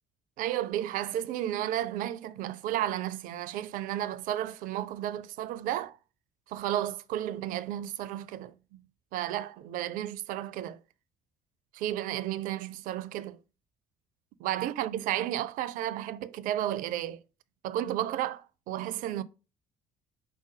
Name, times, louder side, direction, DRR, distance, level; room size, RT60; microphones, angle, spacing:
voice 1, 0.4-6.0 6.5-8.5 9.1-10.8 11.7-13.4 14.4-17.2 17.6-19.2, right 12 dB, 50° right, 0.4 m, -32 dB
4.9 x 2.2 x 4.7 m
figure-of-eight pair, 50°, 17 cm